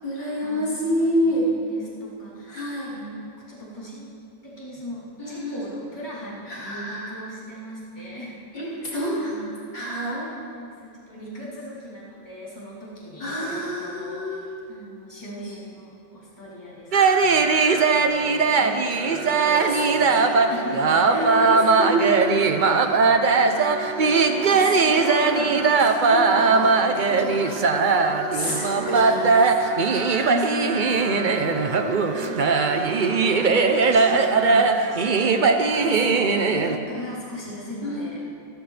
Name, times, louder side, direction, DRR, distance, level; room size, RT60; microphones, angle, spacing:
voice 1, 0.0-1.5 2.5-2.9 5.2-5.7 6.5-7.2 8.5-9.4 9.7-10.3 13.2-14.5 15.4-15.5 19.5-20.3 21.1-23.2 24.4-28.0 28.3-29.5 29.8-29.9 30.2-31.7 35.7-36.8 37.8-38.1, equal, 75° left, -9 dB, 5.3 m, -29 dB
voice 2, 1.1-2.6 2.9-3.2 3.5-4.1 4.4-8.7 9.2-9.7 10.3-16.9 17.2-18.3 18.6-21.8 22.9-23.9 24.7-25.1 25.5-25.6 28.4-28.9 29.8-31.1 32.1-32.7 33.1-35.6 36.0-38.2, equal, 15° left, -8 dB, 3.7 m, -38 dB
sound 1, 16.9-36.8, right 4 dB, 85° right, 0.4 m, -20 dB
27.0 x 13.5 x 3.4 m, 2.5 s
omnidirectional pair, 2.0 m